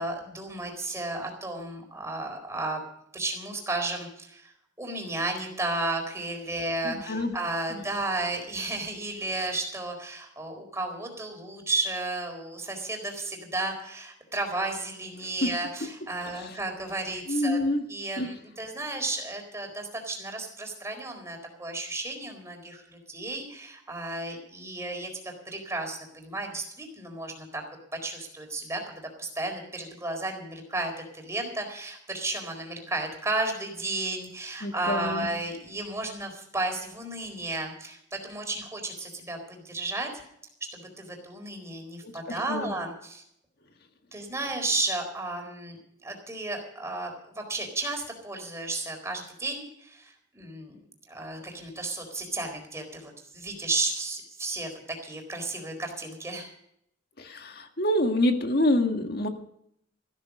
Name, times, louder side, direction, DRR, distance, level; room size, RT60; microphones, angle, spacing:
voice 1, 0.0-2.8 3.1-4.5 4.8-17.6 17.9-25.1 25.5-27.6 28.0-40.1 40.7-43.2 44.1-54.7 55.0-56.5, right 2 dB, 15° right, 3 dB, 4.2 m, -33 dB
voice 2, 6.8-7.3 7.7-7.8 15.4-15.5 16.2-16.6 17.3-17.8 18.2-18.3 34.6-35.3 42.0-42.7 57.2-59.3, left 1 dB, 55° left, 6 dB, 1.9 m, -27 dB
15.0 x 13.5 x 5.4 m, 0.72 s
head